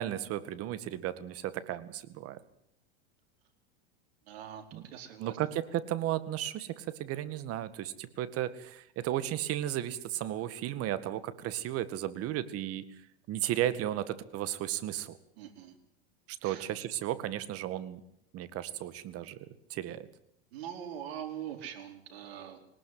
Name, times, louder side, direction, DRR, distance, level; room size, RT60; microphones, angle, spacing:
voice 1, 0.0-2.4 4.7-4.8 5.2-12.8 13.3-15.2 16.4-18.0 18.3-19.4 19.7-20.0, right 12 dB, 45° right, 14 dB, 2.1 m, -34 dB
voice 2, 4.3-5.4 15.4-15.7 16.4-16.7 20.5-22.6, right 9 dB, 75° right, 5 dB, 4.6 m, -43 dB
21.5 x 19.5 x 8.0 m, 0.73 s
hypercardioid pair, 110°, 32 cm